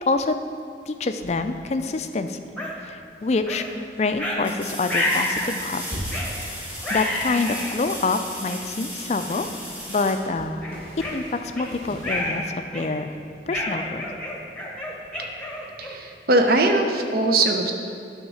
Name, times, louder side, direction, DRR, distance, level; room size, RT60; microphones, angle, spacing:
voice 1, 0.9-2.5 2.8-5.8 6.1-9.5 9.9-10.6 11.1-13.1 13.5-14.1, left 3 dB, 35° left, 8 dB, 0.4 m, -26 dB
sound 1, 1.2-12.5, equal, 35° right, 2.0 m, -42 dB
sound 2, 2.6-2.7 3.5-3.6 4.2-4.4 4.9-5.5 6.1-6.3 6.8-7.8 8.5-8.6 9.3-9.5 9.9-10.1 10.6-11.7 12.0-12.4 12.7-13.1 13.5-16.1, left 1 dB, 5° left, 0.9 m, -29 dB
sound 3, 3.0-3.1 4.4-11.0 13.9-14.0, equal, 10° right, 1.2 m, -36 dB
voice 2, 15.8-17.7, right 2 dB, 55° right, 4 dB, 0.7 m, -20 dB
10.0 x 3.6 x 6.3 m, 2.5 s
head